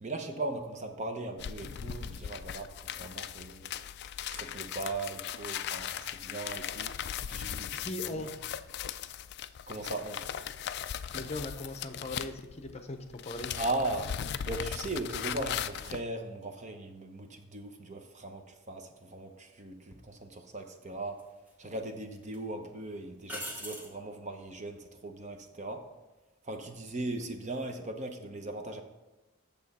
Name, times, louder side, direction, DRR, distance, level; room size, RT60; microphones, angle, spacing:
voice 1, 0.0-3.7 4.3-6.9 7.3-8.3 9.7-10.2 13.6-14.1 14.5-21.2 21.6-25.8 26.5-28.8, right 2 dB, 35° right, 5 dB, 0.8 m, -38 dB
sound 1, 1.4-12.8 13.1-16.0, left 9 dB, 50° left, 0.3 m, -38 dB
voice 2, 7.8-8.3 11.1-13.5, left 2 dB, 30° left, 6 dB, 0.7 m, -39 dB
sound 2, 19.9-20.1 21.2-21.8 22.2-22.4 23.3-24.0 27.1-27.4, equal, 10° right, 1.0 m, -42 dB
8.6 x 6.9 x 4.2 m, 1.1 s
head